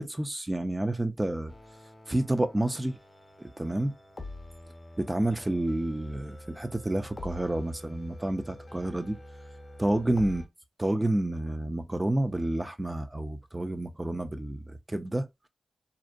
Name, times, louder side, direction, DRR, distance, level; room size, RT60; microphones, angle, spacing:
voice 1, 0.0-1.5 2.1-3.0 3.4-3.9 5.0-9.2 9.8-10.4 10.8-15.3, right 1 dB, 20° right, 0.4 m, -29 dB
sound 1, 1.5-10.5, left 1 dB, 35° left, 0.7 m, -46 dB
2.5 x 2.1 x 2.4 m
supercardioid pair, 45°, 0 cm